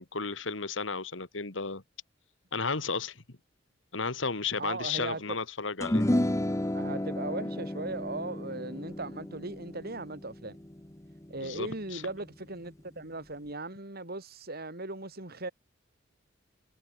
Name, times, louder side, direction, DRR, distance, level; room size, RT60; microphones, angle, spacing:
voice 1, 0.0-1.8 2.5-3.2 3.9-6.1 11.4-12.0, left 4 dB, 75° left, 2.2 m, -33 dB
voice 2, 4.6-5.4 6.7-10.6 11.3-15.5, right 2 dB, 55° right, 5.4 m, -38 dB
sound 1, 5.8-12.3, left 1 dB, 15° left, 1.1 m, -32 dB
head